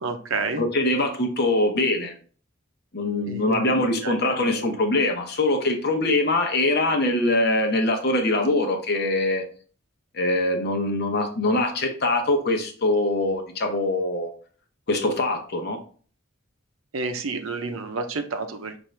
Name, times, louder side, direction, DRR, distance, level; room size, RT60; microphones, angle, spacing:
voice 1, 0.0-0.6 3.3-4.8 16.9-18.8, right 4 dB, 85° right, 7 dB, 0.6 m, -30 dB
voice 2, 0.6-2.1 2.9-9.4 10.1-14.3 14.9-15.8, left 2 dB, 50° left, 4 dB, 0.8 m, -23 dB
5.8 x 2.6 x 3.2 m, 0.42 s
head